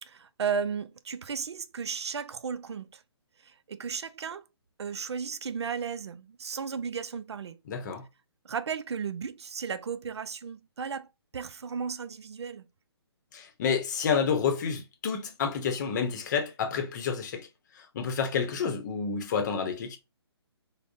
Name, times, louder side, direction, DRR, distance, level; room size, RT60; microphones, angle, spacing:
voice 1, 0.0-3.0 3.4-4.5 4.8-7.6 8.4-11.1 11.3-12.7, right 6 dB, 80° right, 0.4 m, -34 dB
voice 2, 7.7-8.1 13.3-17.5 17.7-20.0, left 6 dB, 45° left, 0.7 m, -29 dB
3.5 x 2.1 x 2.5 m
hypercardioid pair, 140°, 14 cm